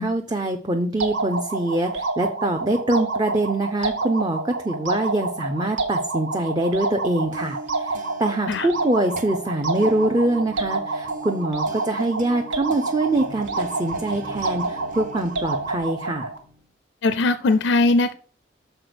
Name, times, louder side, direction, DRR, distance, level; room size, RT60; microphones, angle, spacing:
voice 1, 0.0-16.3, right 2 dB, 20° right, 4 dB, 0.5 m, -24 dB
sound 1, 1.0-16.4, right 3 dB, 80° right, 1.2 m, -28 dB
sound 2, 7.0-16.6, right 2 dB, 45° right, 0.9 m, -42 dB
voice 2, 17.0-18.1, left 3 dB, 70° left, 12 dB, 0.5 m, -20 dB
6.6 x 4.3 x 6.0 m, 0.42 s
head